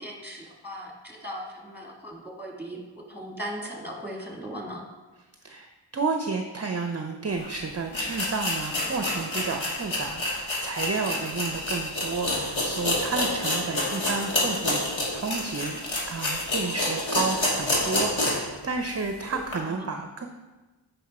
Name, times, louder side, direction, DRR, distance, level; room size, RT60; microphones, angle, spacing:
voice 1, 0.0-2.8 3.1-4.8 19.7-19.9, equal, 5° right, -1 dB, 2.1 m, -38 dB
voice 2, 5.4-15.8 16.1-20.3, right 4 dB, 35° right, 5 dB, 0.6 m, -31 dB
sound 1, 7.4-7.5 7.9-18.5 18.9-19.0 19.5-19.6, left 1 dB, 80° left, 1.8 m, -28 dB
8.3 x 5.4 x 4.2 m, 1.2 s
wide cardioid pair, 50°, 47 cm